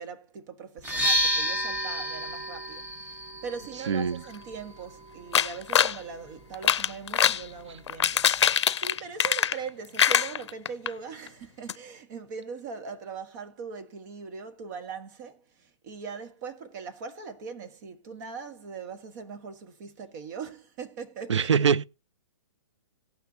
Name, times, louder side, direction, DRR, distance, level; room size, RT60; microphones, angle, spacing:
voice 1, 0.0-21.5, right 5 dB, 40° right, 1.3 m, -41 dB
sound 1, 0.8-8.5, equal, 15° right, 1.2 m, -33 dB
voice 2, 3.9-4.2 21.3-21.8, right 6 dB, 85° right, 0.5 m, -23 dB
sound 2, 5.3-6.0 6.5-7.4 7.9-9.7 10.0-10.9 11.3-11.4 11.7-11.8, left 9 dB, 70° left, 0.5 m, -23 dB
18.0 x 6.0 x 2.8 m
hypercardioid pair, 135°, 15 cm